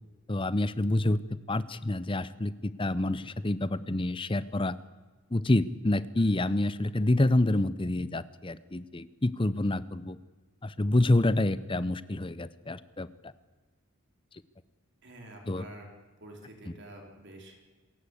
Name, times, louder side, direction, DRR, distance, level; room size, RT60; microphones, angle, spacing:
voice 1, 0.3-4.8 5.3-10.2 10.6-13.3 15.5-15.6, left 1 dB, 25° left, 16 dB, 0.7 m, -28 dB
voice 2, 15.0-15.9 16.2-17.6, right 1 dB, 50° right, 2 dB, 4.5 m, -48 dB
27.0 x 15.5 x 8.3 m, 1.3 s
head